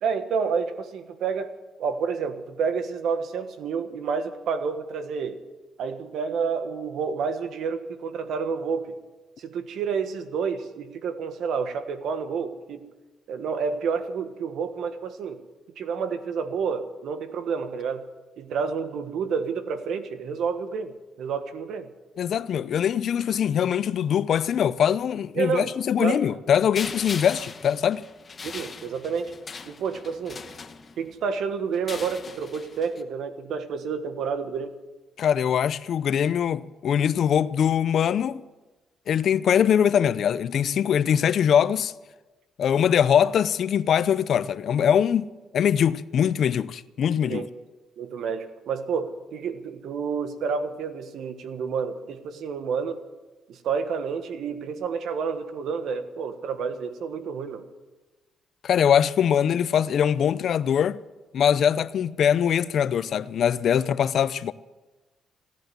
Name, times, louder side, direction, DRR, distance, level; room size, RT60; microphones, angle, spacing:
voice 1, 0.0-1.5 1.8-5.4 5.8-9.0 9.4-12.9 13.3-15.4 15.8-18.1 18.4-21.9 25.3-25.7 26.0-26.2 28.4-29.4 29.6-30.4 31.0-34.8 47.3-47.5 48.0-53.0 53.5-57.7, right 6 dB, 75° right, 1.4 m, -29 dB
voice 2, 22.2-28.1 35.2-38.4 39.1-41.9 42.6-47.5 58.6-61.0 61.3-64.5, left 8 dB, 65° left, 0.5 m, -22 dB
Scrap Metal Rummaging, 26.7-31.2 31.7-33.0, left 5 dB, 40° left, 1.1 m, -39 dB
16.0 x 10.5 x 7.9 m
cardioid pair, 90°, 0 cm